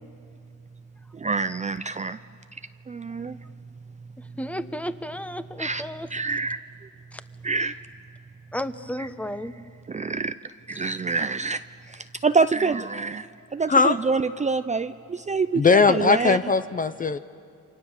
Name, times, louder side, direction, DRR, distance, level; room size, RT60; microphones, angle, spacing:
voice 1, 1.2-2.2 2.9-3.4 5.6-5.8 6.1-6.6 7.4-7.7 9.0-9.1 9.9-10.3 10.7-11.6 12.2-13.3 13.5-16.4, right 4 dB, 25° right, 11 dB, 0.6 m, -26 dB
voice 2, 4.4-6.1 8.5-9.5 10.7-10.8, equal, 5° left, 11 dB, 1.1 m, -33 dB
voice 3, 13.7-14.0 15.5-17.2, left 4 dB, 30° left, 12 dB, 0.7 m, -19 dB
29.0 x 25.0 x 7.3 m, 2.3 s
cardioid pair, 90°, 30 cm